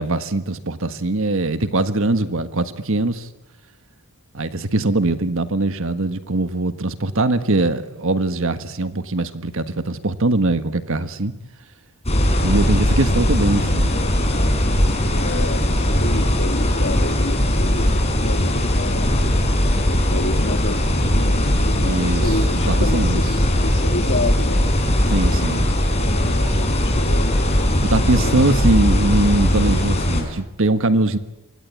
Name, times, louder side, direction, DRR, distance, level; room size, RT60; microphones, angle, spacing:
voice 1, 0.0-3.3 4.3-11.3 12.4-14.1 21.8-23.2 25.1-25.7 27.8-31.2, right 2 dB, 65° right, 10 dB, 1.5 m, -21 dB
sound 1, 12.1-30.2, left 1 dB, 30° left, 5.7 m, -19 dB
voice 2, 15.2-19.3 20.1-24.7 25.9-28.3, left 2 dB, 55° left, 4 dB, 2.1 m, -30 dB
28.0 x 24.5 x 8.5 m, 0.94 s
head